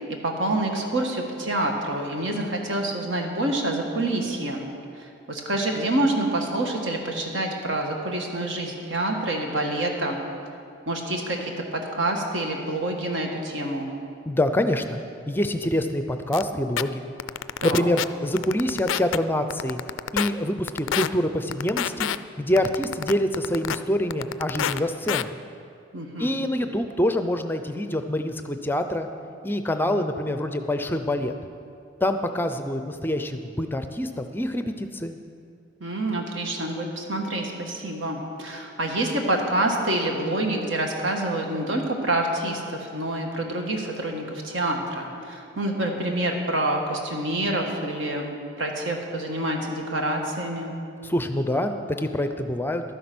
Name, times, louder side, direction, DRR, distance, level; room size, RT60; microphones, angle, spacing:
voice 1, 0.2-4.6 4.9-10.2 10.9-13.9 17.6-17.9 25.9-26.4 35.8-50.7, right 1 dB, 70° right, 2 dB, 1.6 m, -27 dB
voice 2, 14.3-15.0 15.3-17.0 17.6-19.8 20.1-22.1 22.4-25.4 26.2-29.1 29.4-31.3 32.0-35.2 51.0-52.8, left 1 dB, 10° left, 8 dB, 0.5 m, -25 dB
sound 1, 16.3-16.4 16.8-16.9 17.2-18.0 18.4-19.2 19.5-20.3 20.7-21.1 21.5-22.2 22.6-23.8 24.1-24.8 25.1-25.2, left 10 dB, 75° left, 0.3 m, -26 dB
12.0 x 9.8 x 6.0 m, 2.5 s
head